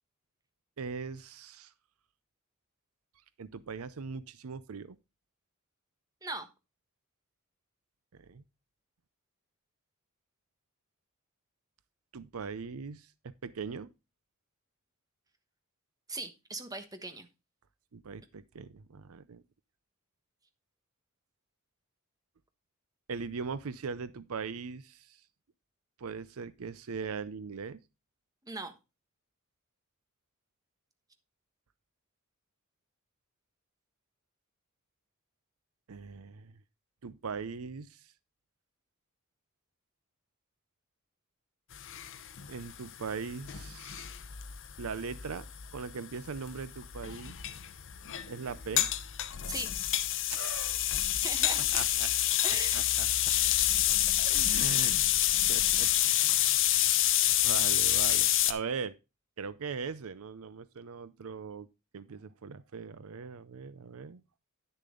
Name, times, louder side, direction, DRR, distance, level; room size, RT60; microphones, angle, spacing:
voice 1, 0.8-1.7 3.4-5.0 8.2-8.4 12.1-13.9 17.9-19.4 23.1-25.2 26.0-27.8 35.9-36.5 37.0-38.0 42.5-44.1 44.8-45.5 45.7-47.3 48.2-48.9 50.3-50.8 51.5-52.1 52.7-53.1 54.2-55.0 55.3-55.9 56.8-56.9 57.4-59.0 59.4-61.7 61.9-64.2, right 5 dB, 75° right, 0.6 m, -40 dB
voice 2, 16.1-17.3 28.5-28.7 49.5-49.7 51.2-51.8 52.4-52.8, right 3 dB, 15° right, 1.2 m, -39 dB
sound 1, 41.7-58.5, left 13 dB, 60° left, 0.8 m, -28 dB
10.5 x 6.7 x 3.7 m
head